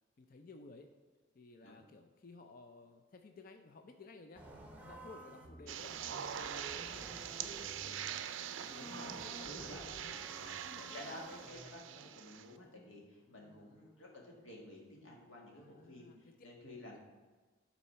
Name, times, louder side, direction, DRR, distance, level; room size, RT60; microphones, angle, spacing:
voice 1, 0.2-0.9 1.3-4.4 4.8-8.1 8.6-11.2 13.4-13.8 15.6-16.2, left 3 dB, 45° left, 5 dB, 0.4 m, -56 dB
sound 1, 4.3-11.7, right 1 dB, 10° right, 0.8 m, -52 dB
sound 2, 5.7-12.5, right 9 dB, 75° right, 0.4 m, -44 dB
voice 2, 8.7-9.8 10.9-17.0, left 1 dB, 80° left, -1 dB, 1.8 m, -52 dB
8.6 x 4.2 x 5.5 m, 1.3 s
head